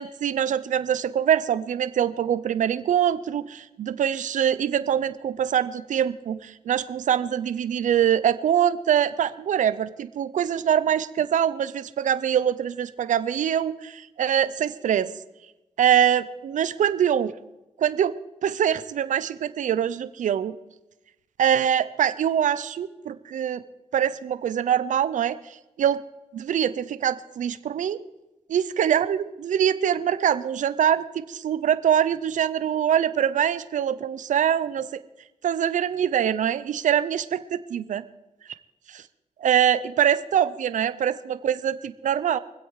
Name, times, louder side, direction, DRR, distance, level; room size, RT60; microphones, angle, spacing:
voice 1, 0.0-15.1 15.8-17.3 17.8-18.1 18.4-20.6 21.4-23.6 23.9-26.0 26.3-28.0 28.5-34.9 35.4-37.2 37.7-38.0 39.4-42.4, right 9 dB, 85° right, 15 dB, 0.6 m, -24 dB
24.0 x 8.1 x 4.8 m, 0.99 s
cardioid pair, 55°, 13 cm